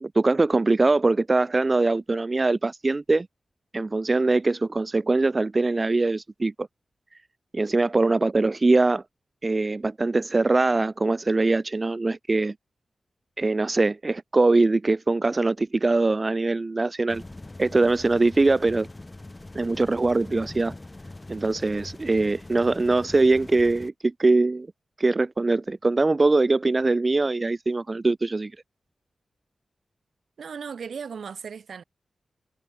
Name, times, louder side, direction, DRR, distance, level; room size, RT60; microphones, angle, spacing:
voice 1, 0.0-3.3 3.7-6.5 7.5-9.0 9.4-12.5 13.4-17.2 17.6-18.9 19.5-20.7 21.3-24.7 25.0-28.5, right 3 dB, 30° right, 0.4 m, -22 dB
sound 1, 17.1-23.9, left 2 dB, 20° left, 2.3 m, -42 dB
voice 2, 30.4-31.8, right 6 dB, 75° right, 1.4 m, -36 dB
wide cardioid pair, 120°, 0 cm